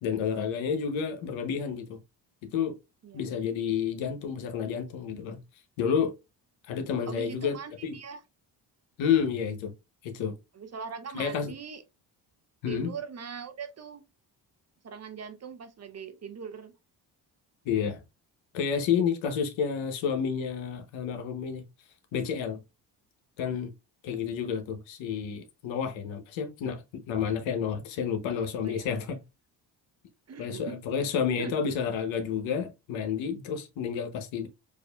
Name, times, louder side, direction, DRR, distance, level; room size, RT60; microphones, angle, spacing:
voice 1, 0.0-2.0 2.5-2.7 3.1-5.4 5.8-6.1 6.7-7.6 7.8-8.0 9.0-9.7 10.0-10.3 11.1-11.5 12.6-12.9 17.7-18.0 18.5-21.6 22.1-22.6 23.4-23.7 24.0-29.2 30.4-34.5, left 7 dB, 80° left, 0.9 m, -30 dB
voice 2, 7.1-8.2 10.5-11.8 12.7-14.0 14.8-16.7 28.6-28.9 30.3-30.8 31.4-31.5, right 6 dB, 35° right, 0.6 m, -41 dB
4.7 x 2.5 x 2.2 m
supercardioid pair, 65°, 45 cm